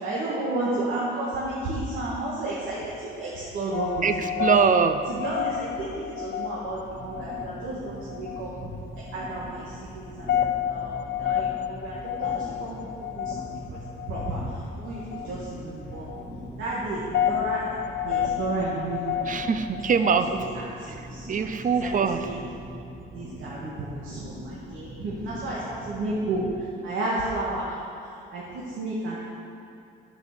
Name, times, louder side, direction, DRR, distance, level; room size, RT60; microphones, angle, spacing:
voice 1, 0.0-4.1 4.4-4.5 5.1-13.8 14.1-16.1 16.6-17.6 18.0-19.1 20.1-21.5 21.8-22.3 23.1-29.2, right 2 dB, 85° right, -6 dB, 1.7 m, -32 dB
sound 1, 3.7-20.5, left 10 dB, 60° left, 0.4 m, -31 dB
voice 2, 4.0-5.0 19.3-20.3 21.3-22.2, right 6 dB, 40° right, 9 dB, 0.7 m, -23 dB
sound 2, 6.6-26.6, equal, 25° right, 1.6 m, -42 dB
7.8 x 7.3 x 6.8 m, 2.6 s
cardioid pair, 90°, 20 cm